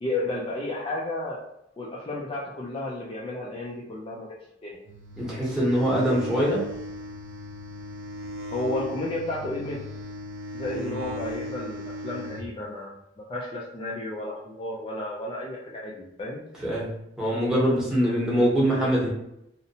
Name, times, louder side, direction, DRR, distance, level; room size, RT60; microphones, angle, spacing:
voice 1, 0.0-1.4 1.8-4.3 4.6-4.8 8.5-9.8 10.5-13.0 13.3-16.4, left 2 dB, 30° left, -5 dB, 0.3 m, -32 dB
sound 1, 4.9-12.5, left 1 dB, 85° right, 0.4 m, -37 dB
voice 2, 5.2-6.7 10.7-10.9 16.6-19.1, equal, 5° right, -6 dB, 0.8 m, -24 dB
2.7 x 2.1 x 2.7 m, 0.79 s
head